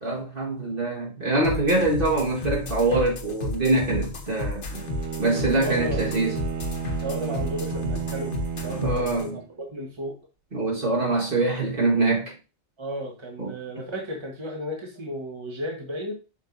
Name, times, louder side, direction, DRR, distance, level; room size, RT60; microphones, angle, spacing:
voice 1, 0.0-4.6 5.2-6.4 8.8-9.4 10.5-12.3 13.4-13.5, right 2 dB, 50° right, 1.9 m, -24 dB
sound 1, 1.4-9.2, left 2 dB, 90° left, 1.4 m, -32 dB
Bowed string instrument, 4.7-9.5, right 8 dB, 90° right, 1.0 m, -32 dB
voice 2, 5.4-6.1 7.0-10.2 12.8-16.1, equal, 25° right, 1.4 m, -34 dB
7.5 x 5.9 x 2.7 m
omnidirectional pair, 1.2 m